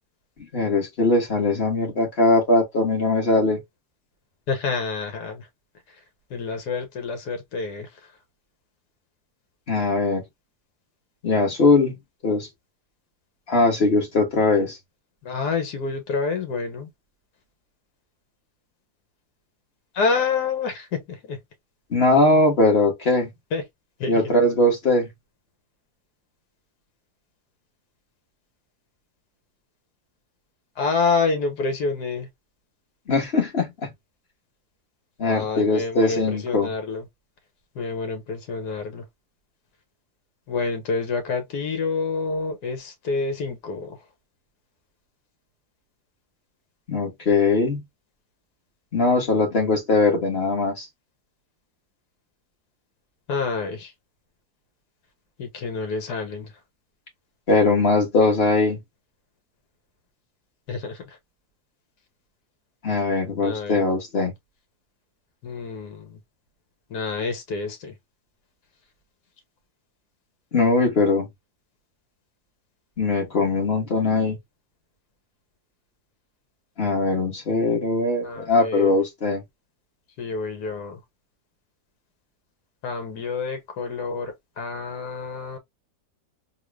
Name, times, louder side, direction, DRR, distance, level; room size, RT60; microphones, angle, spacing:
voice 1, 0.5-3.6 9.7-10.2 11.2-12.0 12.2-12.5 13.5-14.8 21.9-23.3 24.1-25.1 33.1-33.9 35.2-36.7 46.9-47.8 48.9-50.9 57.5-58.8 62.8-64.3 70.5-71.3 73.0-74.4 76.8-79.4, left 3 dB, 40° left, 1.5 m, -20 dB
voice 2, 4.5-5.5 5.9-6.0 6.3-8.1 15.2-16.9 19.9-21.4 23.5-23.6 24.0-24.3 30.7-32.3 35.2-37.1 37.7-39.1 40.5-44.0 53.3-53.9 55.4-56.5 60.7-61.2 63.4-63.8 65.4-66.2 66.9-68.0 78.2-78.9 80.2-81.0 82.8-85.6, left 4 dB, 70° left, 1.6 m, -28 dB
3.8 x 2.3 x 3.2 m
omnidirectional pair, 1.8 m